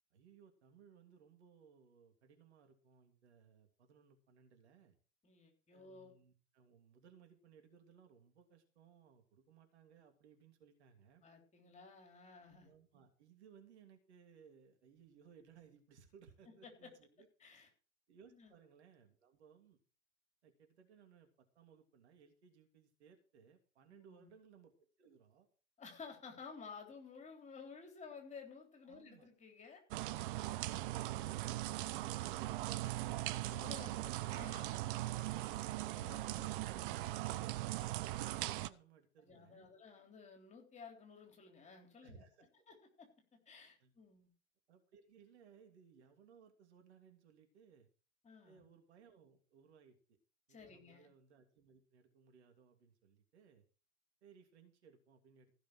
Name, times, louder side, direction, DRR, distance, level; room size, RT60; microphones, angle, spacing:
voice 1, 0.1-5.0 5.7-11.2 12.6-17.3 18.1-19.8 20.4-25.5 28.9-29.3 30.4-34.2 37.4-39.7 42.0-42.5 43.8-43.9 44.7-47.9 48.4-50.2 50.5-53.6 54.2-55.5, right 6 dB, 60° right, 5 dB, 2.9 m, -63 dB
voice 2, 5.2-6.1 11.2-12.7 16.6-16.9 17.4-17.7 18.3-18.5 23.9-24.3 25.8-29.8 33.4-35.6 36.0-36.5 39.2-42.3 42.7-43.1 43.5-44.3 48.2-48.6 50.5-51.1, left 5 dB, 20° left, 2 dB, 3.6 m, -54 dB
sound 1, 29.9-38.7, right 16 dB, 45° right, 0.8 m, -40 dB
15.0 x 6.4 x 6.1 m, 0.39 s
figure-of-eight pair, 95°, 37 cm